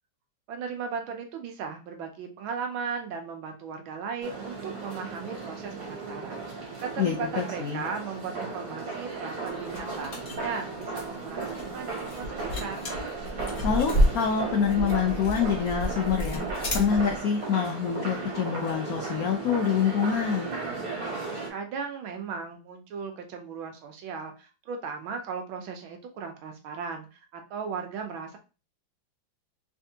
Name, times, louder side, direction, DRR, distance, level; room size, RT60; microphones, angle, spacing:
voice 1, 0.5-12.9 21.5-28.4, right 5 dB, 85° right, 4 dB, 1.6 m, -37 dB
sound 1, 4.2-21.5, right 3 dB, 50° right, 1.5 m, -36 dB
voice 2, 7.0-7.8 13.6-20.5, left 7 dB, 90° left, 3 dB, 0.7 m, -26 dB
sound 2, 9.5-17.2, equal, 40° left, 1.2 m, -30 dB
3.6 x 3.4 x 2.7 m, 0.33 s
omnidirectional pair, 2.1 m